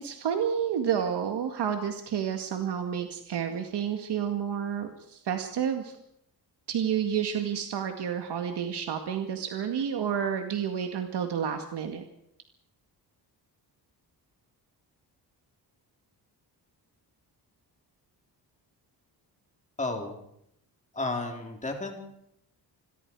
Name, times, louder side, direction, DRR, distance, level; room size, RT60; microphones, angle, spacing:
voice 1, 0.0-6.0 6.7-12.0, right 8 dB, 75° right, 5 dB, 2.1 m, -30 dB
voice 2, 19.8-20.2 20.9-22.0, left 2 dB, 20° left, 2 dB, 4.0 m, -32 dB
28.5 x 21.5 x 4.8 m, 0.76 s
wide cardioid pair, 160°, 41 cm